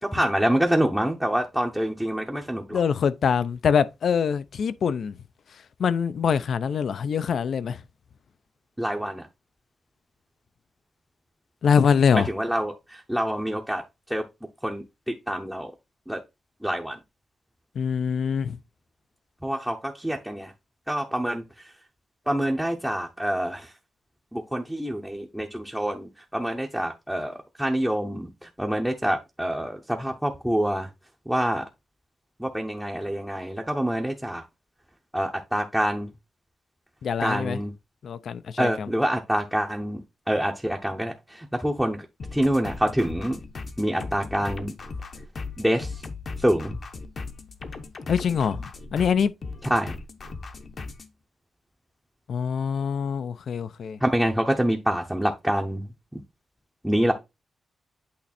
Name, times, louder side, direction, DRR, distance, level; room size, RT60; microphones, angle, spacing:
voice 1, 0.0-2.8 8.8-9.2 12.1-14.2 14.6-15.7 16.1-16.2 16.6-17.0 19.4-20.5 20.9-21.7 22.3-23.7 24.3-30.9 31.3-31.6 32.4-34.4 35.1-36.1 37.2-37.7 38.6-40.0 40.3-42.1 42.3-43.4 43.8-44.7 45.6-46.0 46.4-46.8 49.7-50.0 54.0-55.9 56.8-57.1, equal, 5° right, 0.7 m, -26 dB
voice 2, 2.7-5.2 5.8-7.8 11.6-12.3 17.7-18.6 37.0-37.6 38.0-38.9 48.1-49.3 52.3-54.0, left 7 dB, 60° left, 0.5 m, -24 dB
sound 1, 42.2-51.1, left 4 dB, 40° left, 0.8 m, -37 dB
8.6 x 3.2 x 4.2 m
wide cardioid pair, 165°, 0 cm